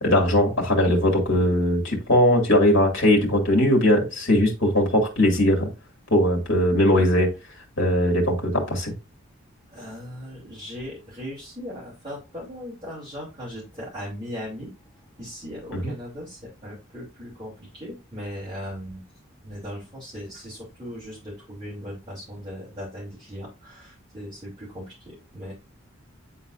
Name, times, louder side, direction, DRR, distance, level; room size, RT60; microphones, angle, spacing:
voice 1, 0.0-5.7 6.1-7.3 7.8-8.9 15.8-15.9, left 1 dB, 60° left, 1 dB, 2.3 m, -20 dB
voice 2, 9.7-14.7 15.2-19.0 19.4-25.5, equal, 20° right, -9 dB, 2.9 m, -38 dB
9.3 x 4.0 x 2.6 m, 0.28 s
head